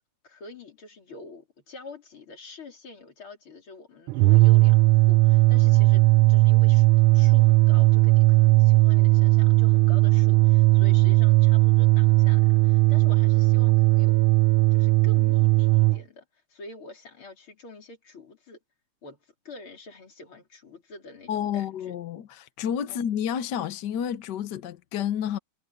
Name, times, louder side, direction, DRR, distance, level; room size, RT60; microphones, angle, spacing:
voice 1, 0.2-6.0 6.3-6.9 7.1-14.2 14.7-16.2 16.5-18.6 19.0-19.2 19.4-22.0 22.9-23.0, left 3 dB, 80° left, 4.7 m, -46 dB
sound 1, 4.1-16.0, right 20 dB, 85° right, 1.5 m, -18 dB
voice 2, 21.3-25.4, left 9 dB, 60° left, 1.4 m, -30 dB
omnidirectional pair, 2.3 m